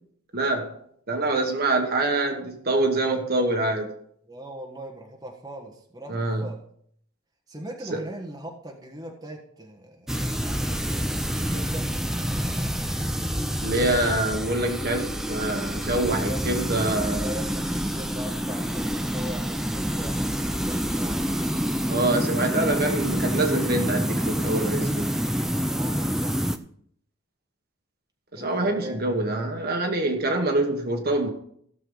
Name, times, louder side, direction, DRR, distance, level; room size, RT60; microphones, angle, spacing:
voice 1, 0.3-0.8 1.1-3.9 6.1-6.5 7.9-8.0 13.6-17.2 21.9-25.1 28.3-31.3, right 2 dB, 45° right, 1.4 m, -25 dB
voice 2, 4.3-6.6 7.5-11.0 11.5-11.8 16.2-21.7 25.1-26.4 28.3-29.2, right 1 dB, 15° right, 1.3 m, -40 dB
sound 1, 10.1-26.6, equal, ahead, 0.4 m, -27 dB
16.0 x 6.8 x 3.9 m
head